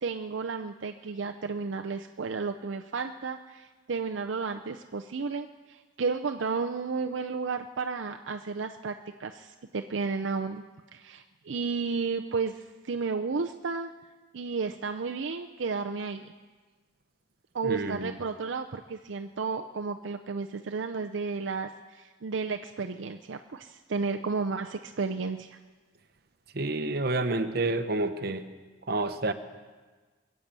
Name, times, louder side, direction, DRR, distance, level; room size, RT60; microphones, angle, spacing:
voice 1, 0.0-10.6 10.9-13.9 14.3-16.3 17.5-25.6, right 4 dB, 75° right, 5 dB, 0.6 m, -33 dB
voice 2, 17.6-18.1 26.5-28.4 28.9-29.3, right 2 dB, 55° right, 8 dB, 1.0 m, -29 dB
23.0 x 8.4 x 7.4 m, 1.4 s
head